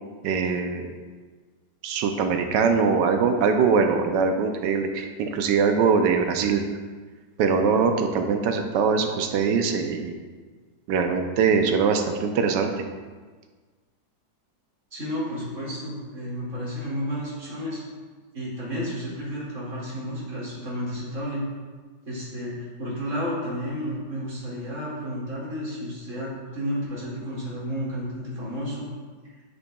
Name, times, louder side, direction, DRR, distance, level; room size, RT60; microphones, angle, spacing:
voice 1, 0.2-0.9 1.8-6.6 7.4-10.2 10.9-12.8, right 5 dB, 90° right, 5 dB, 1.3 m, -22 dB
voice 2, 14.9-17.8 18.3-21.4 22.0-28.9, equal, 45° right, -7 dB, 2.5 m, -32 dB
9.3 x 5.3 x 2.3 m, 1.4 s
omnidirectional pair, 1.8 m